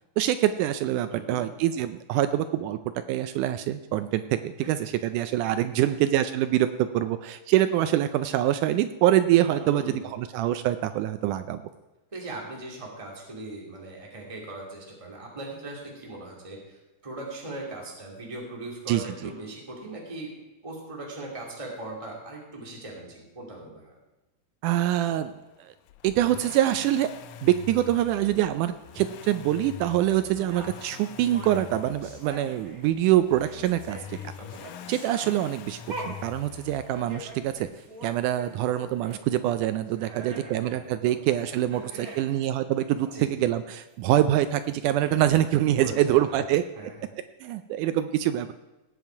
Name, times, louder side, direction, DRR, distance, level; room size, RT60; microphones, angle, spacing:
voice 1, 0.2-2.8 3.1-11.6 18.9-19.0 24.6-25.3 25.6-25.7 26.0-27.1 27.4-34.2 34.9-37.7 38.0-46.6 47.4-48.5, right 13 dB, 85° right, 11 dB, 1.8 m, -25 dB
voice 2, 1.1-1.4 4.6-4.7 5.9-6.0 9.5-10.1 12.1-20.3 20.6-23.9 30.3-30.4 34.4-34.7 40.1-41.2 41.9-42.4 43.1-43.4 45.8-46.4 46.8-47.1, right 2 dB, 10° right, -1 dB, 2.0 m, -40 dB
Accelerating revving vroom, 25.9-37.8 39.1-39.2, left 10 dB, 85° left, 1.7 m, -44 dB
sound 1, 30.5-33.1 33.4-39.2 39.6-39.7 39.9-40.8 41.5-42.4 42.8-43.1 44.7-44.8 45.0-45.2, right 1 dB, 35° right, 1.6 m, -44 dB
18.5 x 8.1 x 4.6 m, 1.1 s
omnidirectional pair, 4.1 m